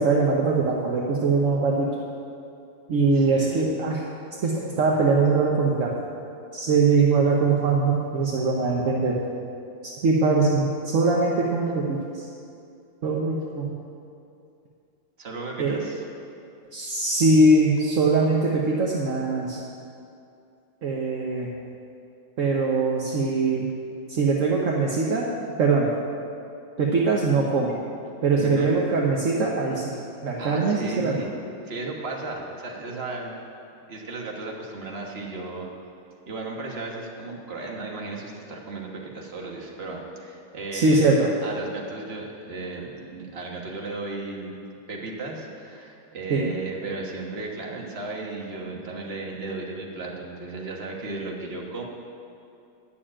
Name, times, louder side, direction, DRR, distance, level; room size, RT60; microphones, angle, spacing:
voice 1, 0.0-1.9 2.9-4.0 4.4-5.9 6.5-9.2 10.0-12.3 13.0-13.7 15.6-15.9 16.7-19.6 20.8-21.5 22.4-23.7 24.1-25.3 25.6-25.9 26.8-27.8 28.2-29.8 30.2-31.1 40.7-41.3 46.3-46.5, right 3 dB, 50° right, -2 dB, 1.0 m, -22 dB
voice 2, 3.1-3.7 15.2-16.0 28.4-28.8 30.4-31.3 31.6-33.4 33.9-35.7 36.3-41.1 41.4-44.5 44.9-51.8, right 3 dB, 35° right, -1 dB, 1.4 m, -35 dB
10.0 x 6.9 x 8.7 m, 2.6 s
omnidirectional pair, 2.2 m